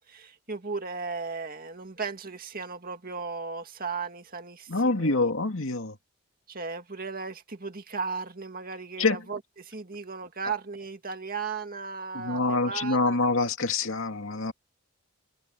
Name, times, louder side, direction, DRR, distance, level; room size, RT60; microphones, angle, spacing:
voice 1, 0.1-5.3 6.5-13.2, right 4 dB, 40° right, 2.2 m, -36 dB
voice 2, 4.7-6.0 9.0-9.2 12.1-14.5, left 3 dB, 60° left, 2.5 m, -26 dB
head